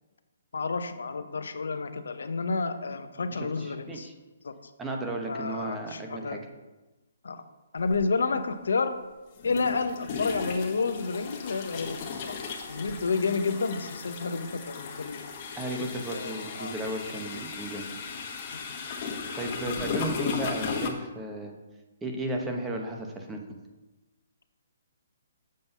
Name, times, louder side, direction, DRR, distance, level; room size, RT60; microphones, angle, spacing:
voice 1, 0.5-4.1 4.4-4.5 5.3-6.4 7.2-7.4 7.7-8.9 9.4-12.3 12.7-15.2 16.1-16.7 18.5-18.6, left 4 dB, 85° left, 9 dB, 0.8 m, -30 dB
voice 2, 3.4-4.1 4.8-6.4 15.6-17.9 19.3-21.5 22.0-23.4, right 1 dB, 10° right, 2 dB, 0.9 m, -34 dB
sound 1, 7.9-8.0 9.4-20.9, left 5 dB, 35° left, 1.2 m, -36 dB
7.6 x 5.4 x 5.5 m, 1.1 s
hypercardioid pair, 160°, 0 cm